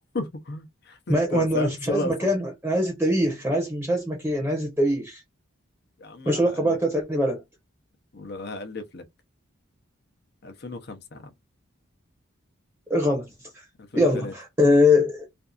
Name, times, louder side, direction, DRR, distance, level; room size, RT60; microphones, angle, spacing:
voice 1, 0.1-2.3 6.0-6.8 8.1-9.0 10.4-11.3 13.9-14.3, left 2 dB, 50° left, 0.6 m, -34 dB
voice 2, 1.1-5.2 6.3-7.4 12.9-13.3 13.9-15.2, left 1 dB, 10° right, 0.7 m, -22 dB
2.6 x 2.3 x 2.3 m
head